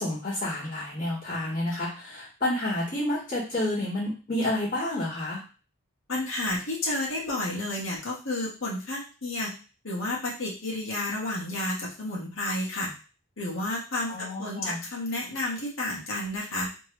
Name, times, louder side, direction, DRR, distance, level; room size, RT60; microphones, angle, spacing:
voice 1, 0.0-5.4 14.1-14.8, left 1 dB, 40° left, -8 dB, 2.0 m, -30 dB
voice 2, 6.1-9.5 9.8-12.9 13.4-16.7, left 1 dB, 80° left, -4 dB, 1.5 m, -31 dB
3.4 x 3.3 x 3.1 m, 0.35 s
head